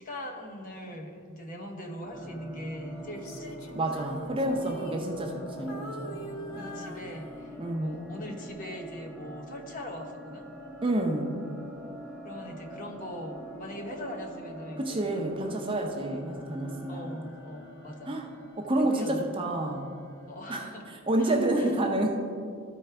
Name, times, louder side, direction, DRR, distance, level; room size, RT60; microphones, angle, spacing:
voice 1, 0.0-3.6 6.6-10.4 12.2-15.1 16.9-18.1 18.8-19.3 20.3-20.8 21.2-21.7, equal, 40° left, 2 dB, 0.9 m, -41 dB
sound 1, 2.0-21.0, equal, 10° left, 1.3 m, -45 dB
Female singing, 3.1-5.4 5.7-7.7 8.3-8.5, equal, 65° left, 0.7 m, -44 dB
voice 2, 3.7-6.2 7.6-8.0 10.8-11.4 14.8-17.2 18.1-18.3 18.6-19.9 20.5-20.7 21.1-22.4, right 1 dB, 25° right, 1 dB, 0.6 m, -29 dB
13.5 x 4.5 x 3.3 m, 2.3 s
head